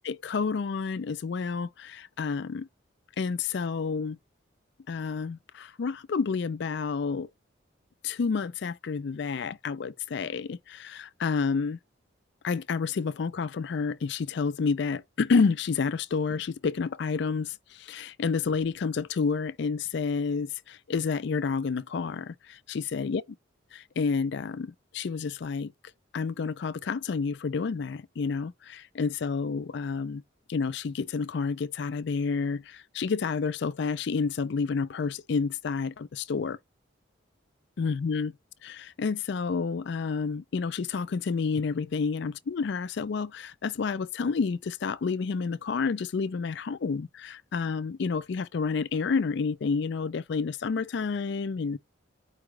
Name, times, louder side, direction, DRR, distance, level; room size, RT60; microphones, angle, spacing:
voice 1, 0.0-2.7 3.2-4.2 4.9-7.3 8.0-11.8 12.4-23.2 23.7-25.7 26.1-30.2 30.5-36.6 37.8-38.3 38.6-51.8, left 5 dB, 60° left, 0.4 m, -29 dB
4.8 x 2.3 x 4.7 m
head